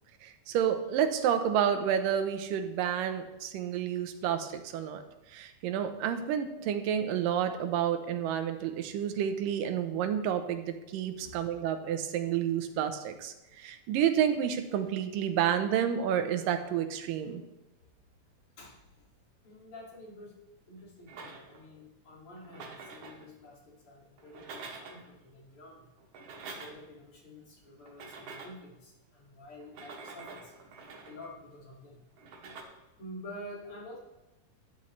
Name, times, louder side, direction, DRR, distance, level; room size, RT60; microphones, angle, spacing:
voice 1, 0.2-5.0 5.3-17.4, right 9 dB, 85° right, 7 dB, 2.5 m, -30 dB
voice 2, 18.6-19.1 19.4-20.4 20.7-25.9 26.5-30.5 31.1-32.0 33.0-34.0, left 1 dB, 45° left, -3 dB, 3.0 m, -49 dB
sound 1, 21.1-21.7 22.4-23.3 24.2-25.1 26.0-27.0 27.9-28.7 29.6-31.3 32.2-32.6, right 4 dB, 70° right, 2.8 m, -46 dB
13.0 x 10.0 x 3.2 m, 1.0 s
omnidirectional pair, 3.8 m